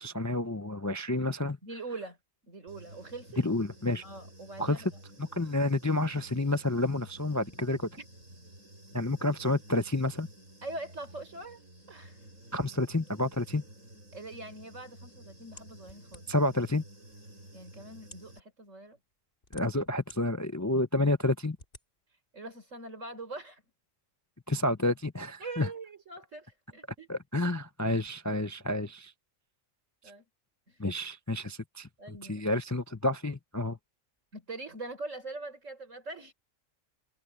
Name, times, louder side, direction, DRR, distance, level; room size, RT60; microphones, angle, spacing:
voice 1, 0.0-1.6 3.4-4.0 4.6-4.8 5.2-7.9 8.9-10.3 12.5-13.6 16.3-16.8 19.5-21.6 24.5-25.7 27.1-29.1 30.8-33.8, left 2 dB, 25° left, 0.4 m, -29 dB
voice 2, 1.6-2.2 2.5-3.4 4.0-4.9 8.0-8.1 10.6-11.6 11.9-12.3 14.1-16.3 17.5-19.0 22.3-23.6 25.4-27.1 30.0-30.2 30.7-30.8 32.0-32.4 34.3-36.3, right 2 dB, 70° right, 4.8 m, -43 dB
Human voice / Buzz, 2.7-18.4, right 1 dB, 90° right, 7.6 m, -52 dB
sound 1, 15.6-16.5 17.3-17.4 18.0-18.3 19.1-20.2 20.7-20.8 21.6-21.9, left 2 dB, 45° left, 2.7 m, -51 dB
omnidirectional pair, 1.4 m